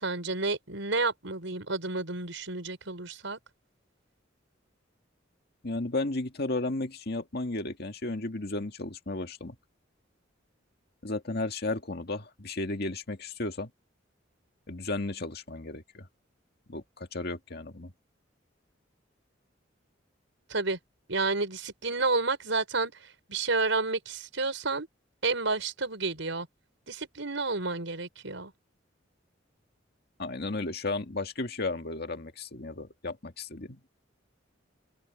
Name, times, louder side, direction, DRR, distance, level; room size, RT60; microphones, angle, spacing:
voice 1, 0.0-3.4 20.5-20.8 21.1-22.9 23.3-24.9 25.2-26.5 26.9-28.5, right 3 dB, 80° right, 5.3 m, -30 dB
voice 2, 5.6-9.6 11.0-13.7 14.7-16.1 16.7-17.9 30.2-33.8, left 2 dB, 55° left, 2.0 m, -34 dB
head